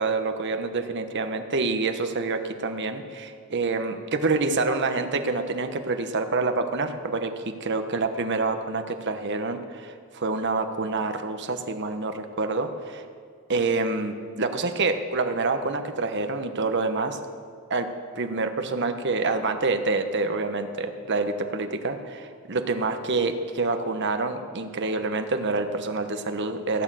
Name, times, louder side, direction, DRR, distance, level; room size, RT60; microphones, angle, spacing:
voice 1, 0.0-13.0 13.5-17.2 17.7-17.9 18.1-26.8, right 3 dB, 55° right, 7 dB, 1.1 m, -27 dB
16.5 x 9.0 x 7.6 m, 2.2 s
head